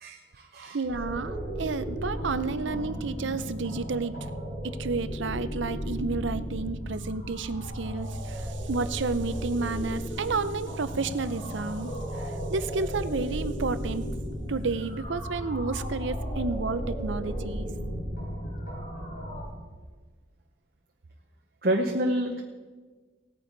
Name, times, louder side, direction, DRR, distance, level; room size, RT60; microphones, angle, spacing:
voice 1, 0.0-0.8 21.6-22.4, right 1 dB, 50° right, 2 dB, 0.9 m, -28 dB
voice 2, 0.7-4.3 4.6-14.0 14.5-17.7, right 4 dB, 70° right, 13 dB, 0.6 m, -31 dB
sound 1, 0.9-19.4, equal, 85° left, 4.9 m, -35 dB
18.0 x 9.5 x 4.0 m, 1.4 s
head